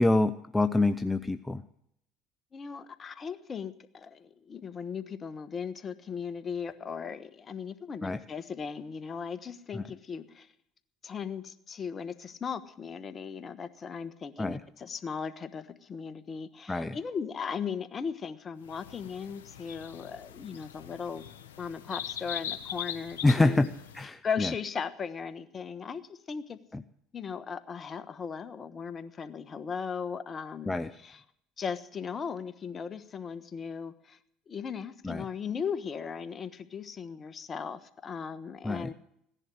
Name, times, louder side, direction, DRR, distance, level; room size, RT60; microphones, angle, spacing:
voice 1, 0.0-1.6 8.0-8.2 9.7-9.8 14.4-14.6 16.7-17.0 23.2-23.7 23.9-24.5 26.7-26.8 30.6-30.9 35.0-35.3 38.6-38.9, left 2 dB, 10° left, 10 dB, 0.7 m, -26 dB
voice 2, 2.5-10.5 11.0-21.2 21.6-23.7 24.2-26.6 27.1-30.7 31.0-31.2 31.6-34.2 34.5-38.9, left 6 dB, 35° left, 12 dB, 1.3 m, -37 dB
sound 1, 18.6-24.0, left 9 dB, 85° left, 1.3 m, -41 dB
16.5 x 11.0 x 6.3 m, 0.74 s
hypercardioid pair, 70°, 0 cm